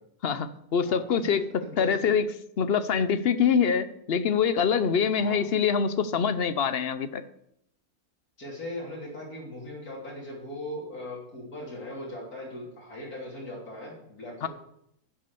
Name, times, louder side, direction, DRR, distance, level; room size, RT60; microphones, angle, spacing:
voice 1, 0.2-2.2 2.6-7.2 14.4-14.5, left 6 dB, 50° left, 13 dB, 0.8 m, -25 dB
voice 2, 0.8-2.1 5.2-5.4 8.4-14.5, left 1 dB, 80° left, -4 dB, 3.4 m, -39 dB
11.0 x 7.5 x 6.8 m, 0.76 s
omnidirectional pair, 1.5 m